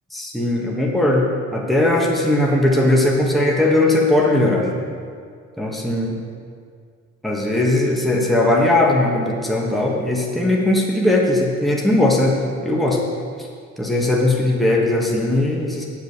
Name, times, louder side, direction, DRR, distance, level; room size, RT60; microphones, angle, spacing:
voice 1, 0.1-1.3 1.5-4.8 5.6-6.1 7.2-12.4 12.6-13.0 13.8-15.9, left 1 dB, ahead, -3 dB, 1.7 m, -18 dB
8.5 x 7.3 x 6.9 m, 2.1 s
cardioid pair, 90°, 30 cm